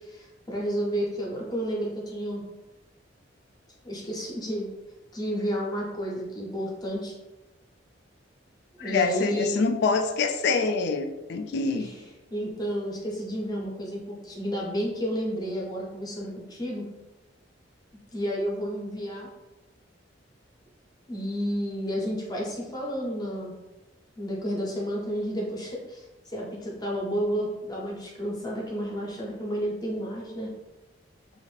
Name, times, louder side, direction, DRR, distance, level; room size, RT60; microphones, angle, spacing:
voice 1, 0.1-2.4 3.8-4.7 5.1-7.1 8.8-9.6 11.8-11.9 12.3-16.8 18.1-19.3 21.1-23.5 24.2-26.0 26.3-30.5, equal, 20° left, -3 dB, 0.7 m, -31 dB
voice 2, 8.8-11.9, left 4 dB, 60° left, 6 dB, 0.3 m, -26 dB
2.6 x 2.5 x 3.2 m, 1.1 s
head